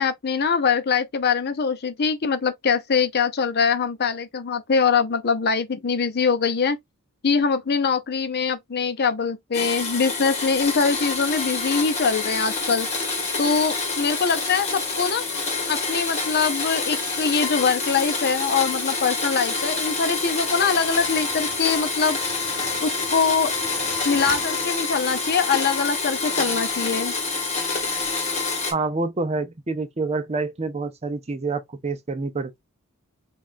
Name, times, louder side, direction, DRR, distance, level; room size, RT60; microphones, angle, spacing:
voice 1, 0.0-6.8 7.2-12.9 13.4-15.2 15.7-22.2 22.8-23.5 24.0-27.1, left 5 dB, 50° left, 0.6 m, -23 dB
Domestic sounds home sounds, 9.5-28.7, left 4 dB, 30° left, 1.4 m, -27 dB
Slam, 20.2-25.3, right 5 dB, 50° right, 0.9 m, -43 dB
voice 2, 28.7-32.6, right 3 dB, 30° right, 0.5 m, -27 dB
5.3 x 2.4 x 2.6 m
head